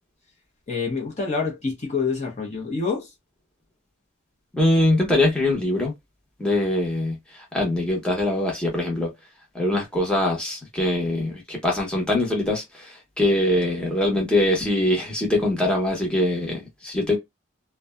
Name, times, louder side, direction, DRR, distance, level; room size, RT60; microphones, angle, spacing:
voice 1, 0.7-3.1, left 4 dB, 35° left, 0.7 m, -27 dB
voice 2, 4.6-5.9 6.4-7.2 7.5-9.1 9.5-17.2, left 1 dB, 5° left, 0.8 m, -23 dB
2.6 x 2.2 x 2.2 m
head